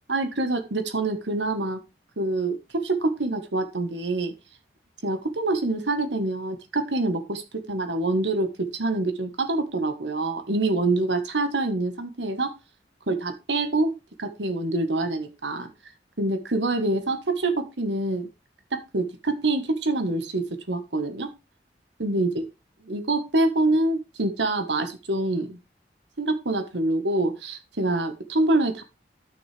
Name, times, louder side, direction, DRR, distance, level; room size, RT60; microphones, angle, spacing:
voice 1, 0.1-1.8 2.2-4.3 5.0-7.4 7.7-12.5 13.1-15.7 16.2-18.3 18.7-21.3 22.0-22.4 22.9-25.6 26.2-28.8, right 2 dB, 85° right, 9 dB, 1.4 m, -26 dB
11.5 x 6.3 x 3.4 m, 0.27 s
head